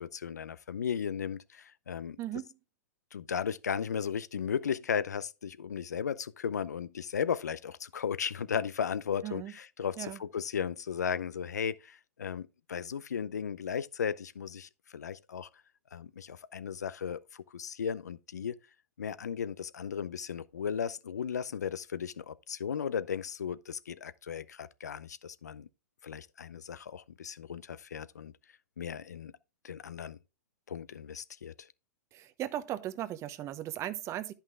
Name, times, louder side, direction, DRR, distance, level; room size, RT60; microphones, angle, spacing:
voice 1, 0.0-2.2 3.1-15.5 15.9-18.6 19.0-25.7 26.0-28.3 28.8-29.3 29.6-30.2 30.7-31.7, left 7 dB, 85° left, 0.6 m, -36 dB
voice 2, 2.2-2.5 9.2-9.5 10.0-10.2 32.1-34.3, right 12 dB, 35° right, 0.9 m, -37 dB
11.0 x 5.7 x 3.5 m
hypercardioid pair, 105°, 9 cm